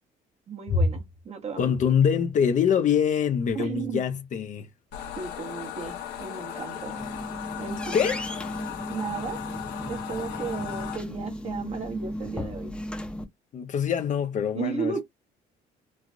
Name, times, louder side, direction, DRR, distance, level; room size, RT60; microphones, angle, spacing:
voice 1, 0.5-1.8 3.5-4.1 5.2-7.0 7.6-8.1 8.9-9.4 9.9-12.8 14.5-15.0, right 6 dB, 40° right, 0.9 m, -34 dB
voice 2, 1.6-4.7 6.9-7.1 7.9-8.2 13.5-15.0, left 7 dB, 50° left, 0.6 m, -24 dB
sound 1, 4.9-11.0, left 10 dB, 85° left, 1.1 m, -37 dB
sound 2, 6.7-13.2, left 1 dB, 5° left, 0.7 m, -35 dB
3.1 x 2.3 x 2.5 m
cardioid pair, 110°, 17 cm